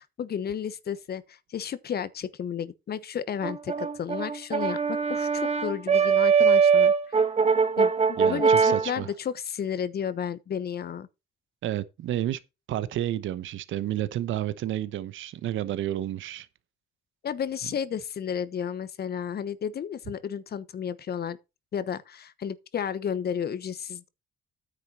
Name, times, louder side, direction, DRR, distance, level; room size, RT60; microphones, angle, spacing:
voice 1, 0.0-7.2 7.8-11.1 17.2-21.4 21.7-24.1, left 8 dB, 55° left, 1.1 m, -32 dB
Brass instrument, 3.4-8.9, right 6 dB, 35° right, 1.2 m, -22 dB
voice 2, 8.2-9.1 11.6-12.4 12.7-16.5, right 12 dB, 80° right, 0.9 m, -30 dB
9.6 x 7.6 x 4.3 m
cardioid pair, 90°, 20 cm